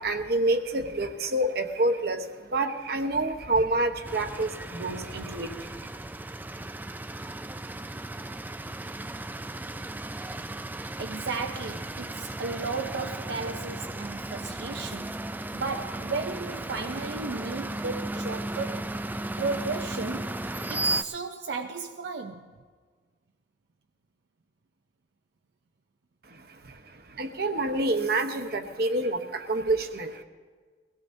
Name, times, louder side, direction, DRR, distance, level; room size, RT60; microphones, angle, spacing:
voice 1, 0.0-5.9 26.3-30.2, right 2 dB, 60° right, 1.0 m, -28 dB
sound 1, 4.0-21.0, right 2 dB, 10° right, 0.3 m, -35 dB
voice 2, 11.0-15.1 15.5-18.8 19.4-22.5, right 4 dB, 80° right, 0.6 m, -34 dB
22.5 x 17.0 x 2.7 m
head